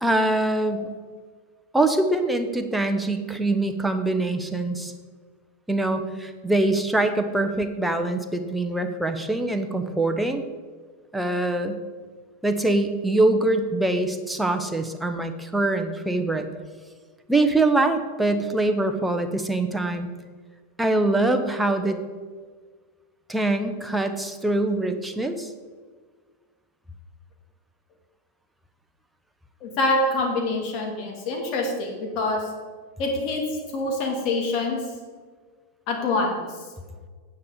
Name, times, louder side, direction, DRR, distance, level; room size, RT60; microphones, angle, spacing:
voice 1, 0.0-0.9 1.7-4.9 5.7-10.4 11.1-11.8 12.4-16.5 17.3-20.1 20.8-22.0 23.3-25.5, right 2 dB, 5° right, 6 dB, 0.9 m, -23 dB
voice 2, 29.6-32.5 33.0-33.4 33.7-34.8 35.9-36.4, left 2 dB, 40° left, 1 dB, 2.5 m, -25 dB
9.4 x 8.3 x 5.1 m, 1.5 s
figure-of-eight pair, 90°, 0 cm